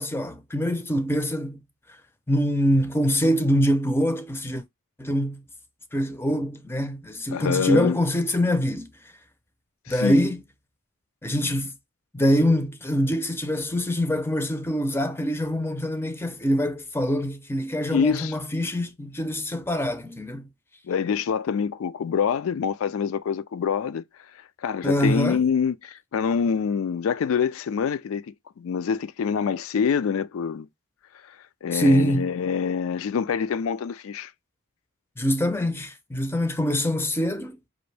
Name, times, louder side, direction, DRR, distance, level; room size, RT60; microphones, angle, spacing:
voice 1, 0.0-1.6 2.3-4.6 5.0-5.4 5.9-8.9 9.9-10.4 11.2-11.7 12.1-20.5 24.8-25.4 31.7-32.3 35.2-37.6, equal, 10° left, 0.5 m, -24 dB
voice 2, 7.3-8.0 9.9-10.2 17.9-18.3 20.9-24.0 24.6-30.7 31.2-31.4 31.6-34.3, left 6 dB, 70° left, 0.3 m, -26 dB
5.1 x 2.6 x 3.2 m
head